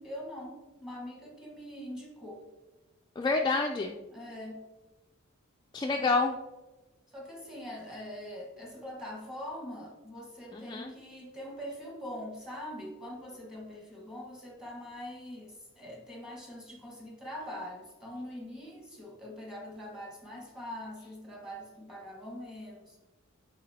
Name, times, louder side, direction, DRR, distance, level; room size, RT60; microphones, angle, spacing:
voice 1, 0.0-2.5 4.1-4.7 5.9-6.1 7.1-23.0, left 1 dB, 5° right, -1 dB, 1.3 m, -43 dB
voice 2, 3.2-4.0 5.7-6.4 10.5-10.9, left 3 dB, 20° left, 1 dB, 0.3 m, -28 dB
9.1 x 4.2 x 2.7 m, 1.1 s
head